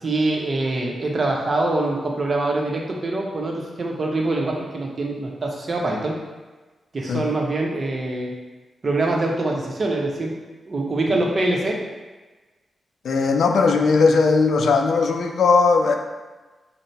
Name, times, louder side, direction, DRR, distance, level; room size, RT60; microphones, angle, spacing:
voice 1, 0.0-6.2 6.9-8.3 8.8-10.4 10.7-11.8, right 2 dB, 50° right, -1 dB, 0.8 m, -24 dB
voice 2, 13.0-16.0, left 4 dB, 75° left, 4 dB, 0.3 m, -18 dB
3.8 x 2.1 x 4.3 m, 1.3 s
supercardioid pair, 40°, 0 cm